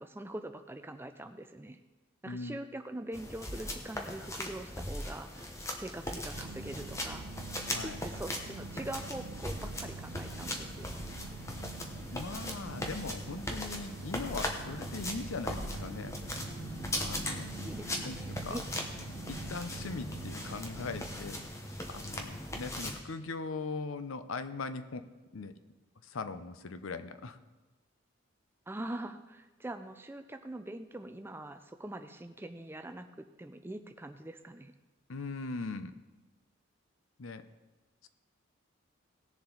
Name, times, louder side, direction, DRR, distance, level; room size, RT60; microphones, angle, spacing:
voice 1, 0.0-1.8 2.2-7.3 7.8-11.0 17.6-18.6 28.7-34.7, right 1 dB, 10° right, 8 dB, 0.4 m, -43 dB
voice 2, 2.2-2.6 7.7-8.0 12.1-16.2 17.0-17.5 18.0-18.2 18.4-18.6 19.3-21.4 21.9-25.1 25.3-25.5 26.0-27.4 35.1-35.9 37.2-37.4, left 4 dB, 80° left, 11 dB, 0.7 m, -40 dB
sound 1, 3.1-23.0, left 1 dB, 15° left, 0.9 m, -39 dB
sound 2, 6.3-21.3, right 4 dB, 80° right, 0.6 m, -46 dB
18.0 x 7.1 x 3.9 m, 1.2 s
head